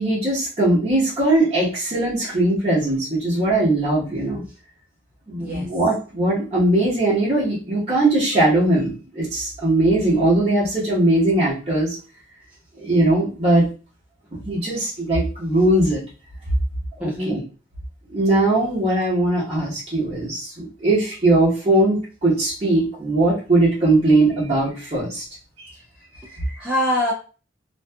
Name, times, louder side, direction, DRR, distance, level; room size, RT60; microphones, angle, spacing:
voice 1, 0.0-4.4 5.3-12.0 12.8-13.6 14.4-16.0 17.0-17.4 18.1-25.2 25.6-25.7, right 2 dB, 35° right, -9 dB, 1.0 m, -20 dB
voice 2, 5.4-5.7 17.0-17.4 26.2-27.1, left 1 dB, 5° right, -5 dB, 0.4 m, -25 dB
2.6 x 2.4 x 2.2 m, 0.35 s
head